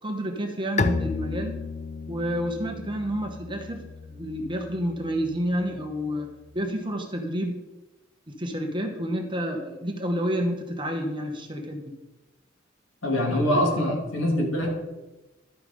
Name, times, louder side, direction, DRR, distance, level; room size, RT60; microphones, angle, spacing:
voice 1, 0.0-1.6 2.1-6.3 6.5-7.5 8.3-11.9 13.3-14.0, equal, 25° right, 4 dB, 1.1 m, -29 dB
Bowed string instrument, 0.8-6.4, left 4 dB, 35° left, 0.5 m, -33 dB
voice 2, 13.0-14.8, left 1 dB, 75° left, 0 dB, 2.5 m, -24 dB
13.0 x 5.1 x 5.1 m, 1.1 s
head